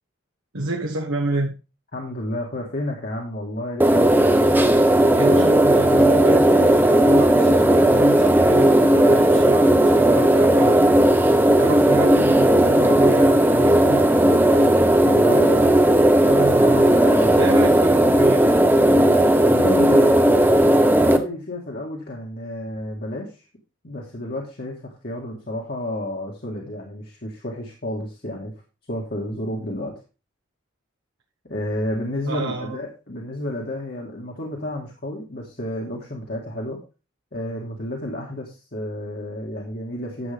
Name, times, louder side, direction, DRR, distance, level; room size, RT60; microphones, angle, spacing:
voice 1, 0.5-1.5 5.1-10.9 11.6-14.0 15.5-15.7 16.2-16.9 17.4-18.5 32.3-32.8, right 2 dB, 85° right, -2 dB, 1.4 m, -29 dB
voice 2, 1.9-4.3 15.0-15.8 16.9-17.4 19.4-23.4 23.8-28.5 28.9-29.9 31.5-36.8 37.3-40.3, left 1 dB, 50° left, -1 dB, 1.8 m, -31 dB
sound 1, 3.8-21.2, right 1 dB, 10° right, 0.6 m, -16 dB
11.0 x 7.2 x 3.5 m, 0.32 s
head